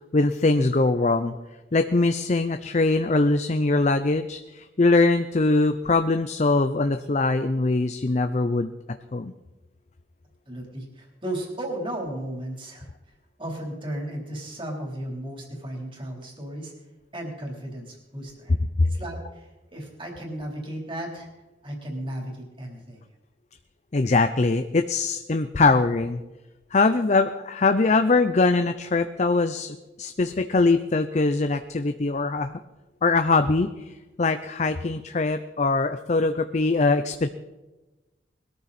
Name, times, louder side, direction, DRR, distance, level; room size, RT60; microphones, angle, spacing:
voice 1, 0.1-1.4 1.7-8.7 9.1-9.3 18.8-18.9 23.9-26.2 26.7-32.5 33.0-37.3, left 3 dB, 40° left, 9 dB, 0.5 m, -22 dB
voice 2, 10.4-12.9 13.4-16.7 17.1-18.6 18.8-21.3 21.6-23.0, right 1 dB, 30° right, 0 dB, 3.5 m, -35 dB
21.0 x 13.5 x 4.2 m, 1.1 s
head